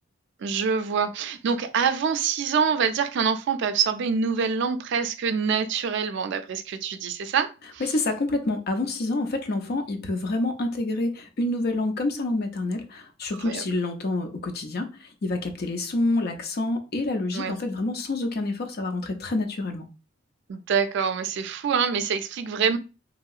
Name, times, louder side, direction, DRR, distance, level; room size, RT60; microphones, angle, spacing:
voice 1, 0.4-7.8 13.4-13.6 17.3-17.5 20.5-22.8, right 6 dB, 65° right, 0.4 m, -25 dB
voice 2, 7.8-19.9, left 2 dB, 55° left, 0.5 m, -27 dB
2.9 x 2.7 x 2.4 m
head